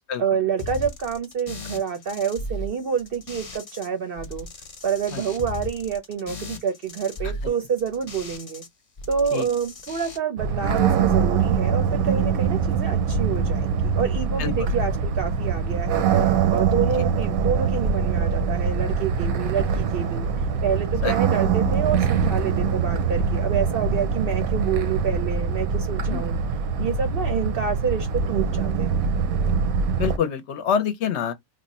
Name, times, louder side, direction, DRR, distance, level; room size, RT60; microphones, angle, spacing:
voice 1, 0.2-4.5 4.8-8.6 9.1-16.2 16.5-20.3 20.6-26.4 26.8-29.1, right 7 dB, 60° right, 0.6 m, -28 dB
sound 1, 0.6-3.9 4.2-8.7 9.0-10.2, left 2 dB, 45° left, 0.4 m, -37 dB
sound 2, 10.4-30.2, right 6 dB, 80° right, 1.0 m, -23 dB
voice 2, 14.4-14.7 17.0-17.1 21.0-21.1 26.1-26.2 29.9-31.3, left 7 dB, 60° left, 0.8 m, -26 dB
3.1 x 2.1 x 4.0 m
omnidirectional pair, 1.5 m